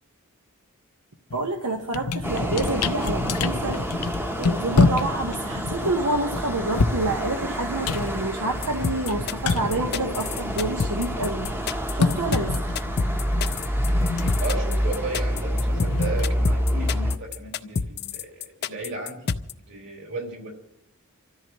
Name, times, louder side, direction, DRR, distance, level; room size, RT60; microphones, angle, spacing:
sound 1, 1.3-1.5 1.8-10.7 10.9-16.9, left 4 dB, 85° left, 0.7 m, -28 dB
voice 1, 1.3-4.1 4.4-11.5 11.9-12.5, right 2 dB, 90° right, 3 dB, 1.2 m, -28 dB
sound 2, 2.2-17.2, equal, 10° right, 0.9 m, -28 dB
sound 3, 8.6-19.5, left 5 dB, 45° left, 0.5 m, -28 dB
voice 2, 14.4-19.3 19.7-20.6, right 2 dB, 55° right, 0 dB, 4.1 m, -34 dB
28.0 x 13.5 x 3.1 m, 0.81 s
head